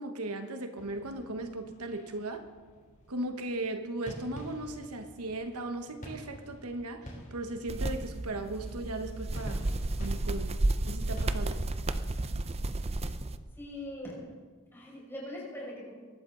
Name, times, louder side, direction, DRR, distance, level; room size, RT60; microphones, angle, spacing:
voice 1, 0.0-2.4 3.1-9.7 10.0-10.5 10.8-11.6, right 2 dB, 80° right, 7 dB, 1.2 m, -37 dB
fireworks small pops Montreal Canada, 0.8-11.9, equal, 35° left, 3.3 m, -49 dB
sound 1, 7.7-13.4, right 2 dB, 30° right, 0.6 m, -32 dB
voice 2, 13.6-14.2 14.7-15.9, left 1 dB, 10° left, -5 dB, 6.1 m, -41 dB
23.0 x 12.5 x 3.9 m, 1.5 s
head